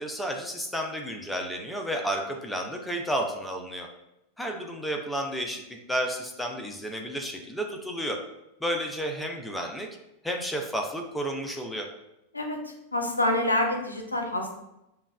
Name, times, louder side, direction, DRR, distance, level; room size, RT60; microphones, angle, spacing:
voice 1, 0.0-3.9 4.4-5.6 5.9-8.2 8.6-9.9 10.2-11.9, equal, 5° left, 2 dB, 0.5 m, -31 dB
voice 2, 12.3-14.6, left 1 dB, 80° left, 3 dB, 0.5 m, -27 dB
5.2 x 2.3 x 2.2 m, 0.87 s
figure-of-eight pair, 90°, 0 cm